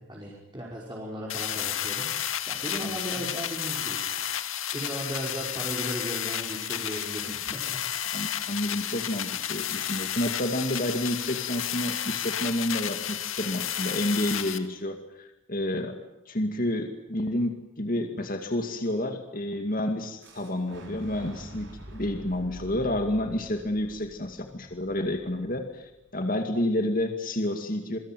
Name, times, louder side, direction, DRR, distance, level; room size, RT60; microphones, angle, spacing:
voice 1, 0.0-2.1 2.5-4.2 4.7-7.8, equal, 20° right, -4 dB, 5.5 m, -36 dB
sound 1, 1.3-14.6, left 10 dB, 85° left, 2.0 m, -32 dB
voice 2, 2.8-3.3 7.3-7.4 8.1-16.0 16.3-28.0, left 1 dB, 45° left, 5 dB, 2.3 m, -30 dB
Fire / Explosion, 20.2-26.1, equal, 60° right, 6.2 m, -47 dB
28.0 x 23.0 x 9.3 m, 0.92 s
head